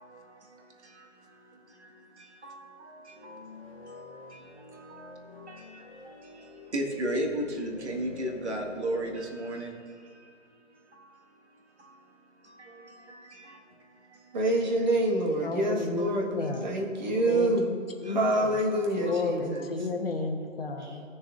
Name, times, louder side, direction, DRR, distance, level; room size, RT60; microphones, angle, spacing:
voice 1, 0.0-14.4 18.0-18.2 19.1-19.2 19.5-19.6, right 1 dB, 60° right, 1.7 m, -38 dB
sound 1, 3.1-9.3, left 2 dB, 25° left, 1.0 m, -46 dB
voice 2, 14.3-17.6 18.0-19.6 20.8-21.0, right 1 dB, 35° right, 1.5 m, -27 dB
voice 3, 15.4-16.7 17.3-18.6 18.9-21.0, left 3 dB, 50° left, 1.1 m, -33 dB
16.5 x 6.9 x 2.5 m
hypercardioid pair, 165°, 39 cm